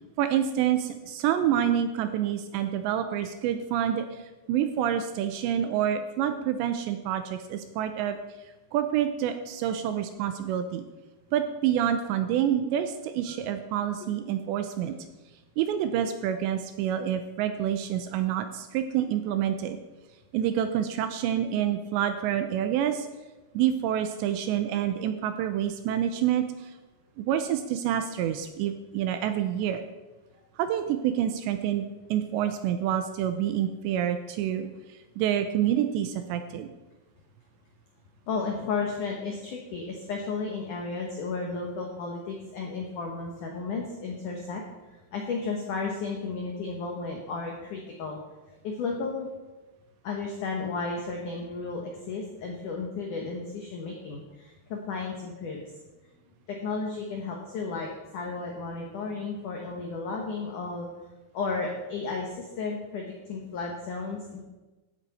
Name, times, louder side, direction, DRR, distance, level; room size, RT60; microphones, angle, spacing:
voice 1, 0.2-4.2 4.5-8.2 8.7-10.8 11.3-15.0 15.6-19.8 20.3-23.1 23.5-26.7 27.2-29.8 30.6-36.7, right 10 dB, 80° right, 8 dB, 2.7 m, -27 dB
voice 2, 38.3-44.6 44.9-49.3 50.0-55.6 56.5-60.9 61.3-64.4, left 4 dB, 80° left, 0 dB, 1.8 m, -33 dB
15.5 x 8.3 x 4.2 m, 1.1 s
omnidirectional pair, 5.5 m